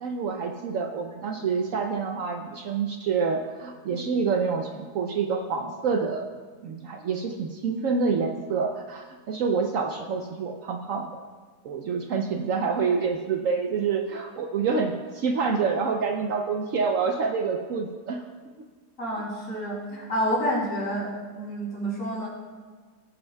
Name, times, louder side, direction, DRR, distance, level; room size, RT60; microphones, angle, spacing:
voice 1, 0.0-6.2 6.6-11.1 11.6-18.2 18.6-18.7, right 5 dB, 65° right, 4 dB, 0.9 m, -27 dB
voice 2, 19.0-22.3, equal, 50° left, -4 dB, 3.3 m, -29 dB
20.0 x 8.0 x 2.3 m, 1.5 s
omnidirectional pair, 1.7 m